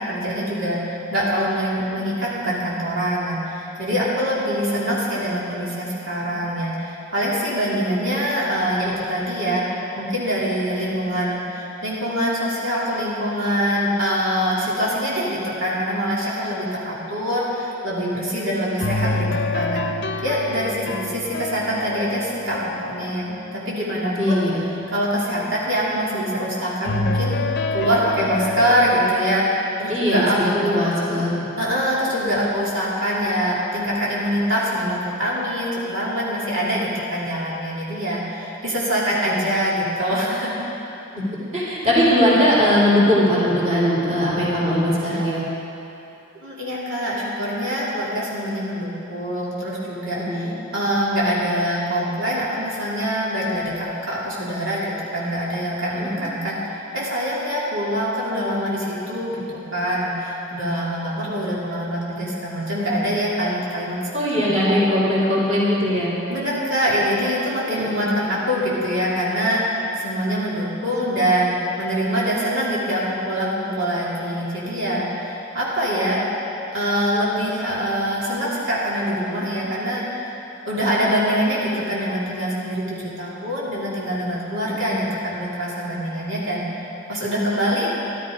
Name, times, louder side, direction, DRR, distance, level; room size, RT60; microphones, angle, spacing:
voice 1, 0.0-9.6 10.0-19.8 20.2-24.4 24.9-27.3 27.7-29.5 29.8-30.8 31.6-40.7 46.4-56.6 56.9-64.0 64.3-64.7 66.3-76.2 76.7-80.3 80.6-86.6 87.1-87.9, equal, 75° right, -7 dB, 2.9 m, -24 dB
voice 2, 7.9-8.3 20.8-21.1 24.2-24.6 29.9-31.4 39.2-39.5 41.1-41.3 41.5-45.4 50.2-50.5 56.0-56.3 64.1-66.1 67.7-68.1 84.6-85.0, equal, 35° right, -6 dB, 3.3 m, -20 dB
sound 1, 18.8-24.1 26.8-29.0, left 2 dB, 55° left, 0.7 m, -27 dB
14.5 x 12.5 x 5.0 m, 2.9 s
head